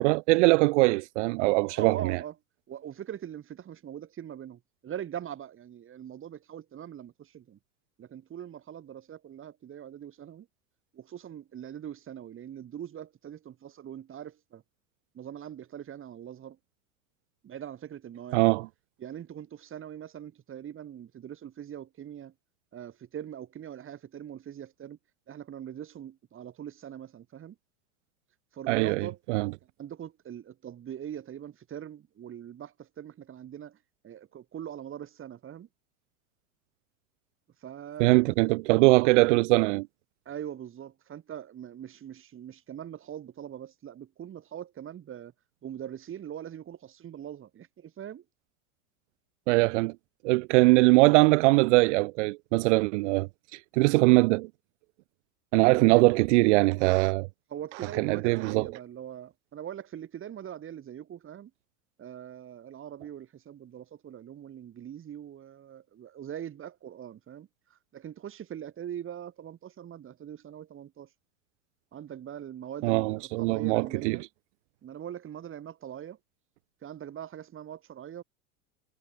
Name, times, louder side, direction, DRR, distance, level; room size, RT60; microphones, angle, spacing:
voice 1, 0.0-2.2 18.3-18.7 28.7-29.5 38.0-39.9 49.5-49.9 50.2-54.5 55.5-57.3 58.0-58.7 72.8-74.2, right 24 dB, 60° right, 0.5 m, -22 dB
voice 2, 1.7-2.4 2.7-7.6 8.0-10.5 10.9-14.6 15.1-16.6 17.4-18.4 19.0-22.3 22.7-25.0 25.3-27.6 28.5-29.2 29.8-33.8 34.0-35.7 37.6-38.4 40.3-45.3 45.6-48.2 55.7-56.1 57.5-61.5 62.0-71.1 71.9-74.2 74.8-76.2 76.8-78.2, right 10 dB, 30° right, 3.7 m, -42 dB
hypercardioid pair, 105°, 41 cm